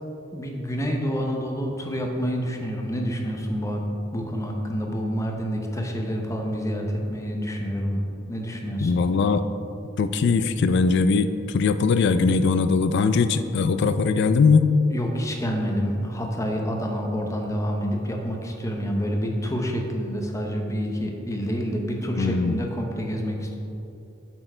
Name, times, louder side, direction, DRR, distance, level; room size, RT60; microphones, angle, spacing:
voice 1, 0.3-3.8 4.1-8.0 8.3-8.9 14.9-23.6, equal, 15° left, 1 dB, 0.7 m, -28 dB
voice 2, 8.8-9.5 10.0-14.7 22.2-22.6, left 4 dB, 60° left, 11 dB, 0.3 m, -20 dB
7.9 x 4.4 x 4.4 m, 2.8 s
head